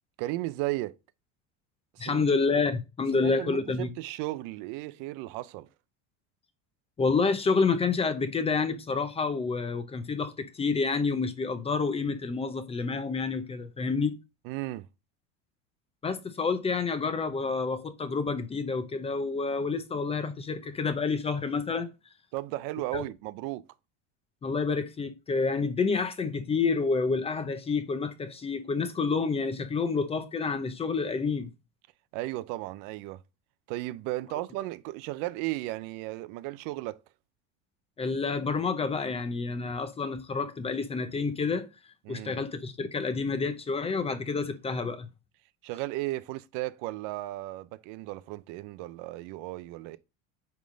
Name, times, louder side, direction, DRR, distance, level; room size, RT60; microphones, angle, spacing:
voice 1, 0.2-1.0 1.9-2.3 3.2-5.7 14.4-14.9 22.3-23.6 32.1-33.2 33.7-37.0 42.0-42.4 45.6-50.0, right 18 dB, 55° right, 0.5 m, -35 dB
voice 2, 2.0-3.9 7.0-14.2 16.0-21.9 22.9-23.0 24.4-31.5 38.0-41.7 42.1-45.1, left 4 dB, 15° left, 0.5 m, -29 dB
9.2 x 3.6 x 3.8 m
supercardioid pair, 140°, 38 cm